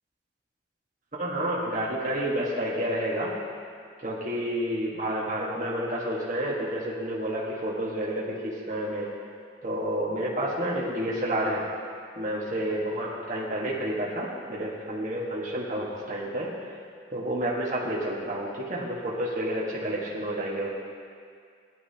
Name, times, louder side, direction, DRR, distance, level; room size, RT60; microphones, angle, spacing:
voice 1, 1.1-3.3 4.0-9.1 9.6-11.7 12.2-16.5 17.1-20.7, right 1 dB, 40° right, -6 dB, 1.5 m, -30 dB
17.0 x 10.5 x 2.8 m, 2.2 s
head